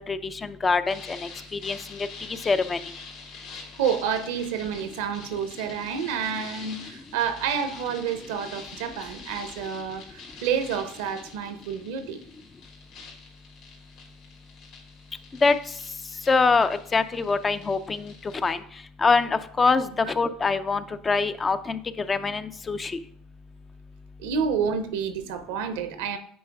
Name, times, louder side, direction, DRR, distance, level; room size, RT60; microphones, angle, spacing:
voice 1, 0.0-2.9 15.4-15.6 16.3-18.6 19.0-23.0, left 4 dB, 25° left, 11 dB, 0.5 m, -24 dB
sound 1, 0.9-18.6, left 4 dB, 65° left, 2.6 m, -45 dB
voice 2, 3.8-12.2 24.2-26.2, right 7 dB, 75° right, 10 dB, 0.8 m, -29 dB
9.5 x 4.5 x 3.5 m, 0.62 s
hypercardioid pair, 70°, 0 cm